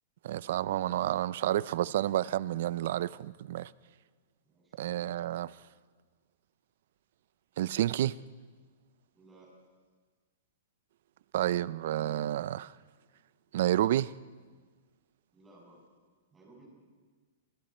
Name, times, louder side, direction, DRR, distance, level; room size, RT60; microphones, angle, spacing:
voice 1, 0.2-3.7 4.8-5.5 7.6-8.2 11.3-12.7 13.5-14.1, right 12 dB, 55° right, 0.5 m, -30 dB
voice 2, 4.4-4.8 9.1-9.5 15.3-15.8 16.3-16.7, right 2 dB, 10° right, 6.6 m, -58 dB
29.0 x 25.5 x 4.4 m
hypercardioid pair, 165°, 0 cm